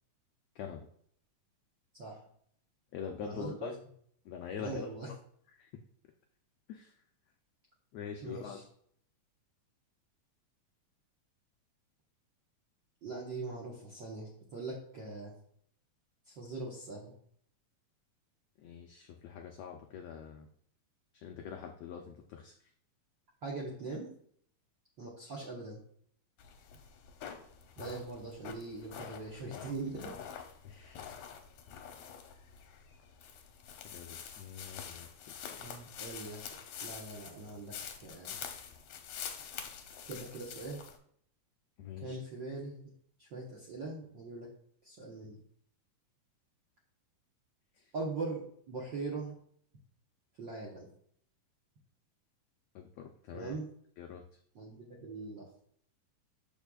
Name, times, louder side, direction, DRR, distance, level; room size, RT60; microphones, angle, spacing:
voice 1, 0.6-0.9 2.9-3.7 4.2-4.9 5.6-5.7 6.7-6.9 7.9-8.6 18.6-20.5 21.2-22.5 30.6-31.1 33.8-35.8 41.8-42.2 52.7-53.5 54.0-54.2, left 7 dB, 90° left, 4 dB, 1.4 m, -44 dB
voice 2, 3.2-3.7 4.6-5.1 8.2-8.6 13.0-15.3 16.3-17.1 23.4-24.1 25.0-25.8 27.8-30.1 35.6-36.4 36.8-37.7 38.0-38.4 40.0-40.8 42.0-42.8 43.2-44.5 44.8-45.4 47.9-49.4 50.4-50.9 53.3-53.7 54.5-55.6, right 3 dB, 65° right, -4 dB, 1.1 m, -41 dB
sound 1, 26.4-41.0, left 8 dB, 70° left, 1.8 m, -47 dB
12.0 x 4.4 x 2.3 m, 0.64 s
omnidirectional pair, 3.8 m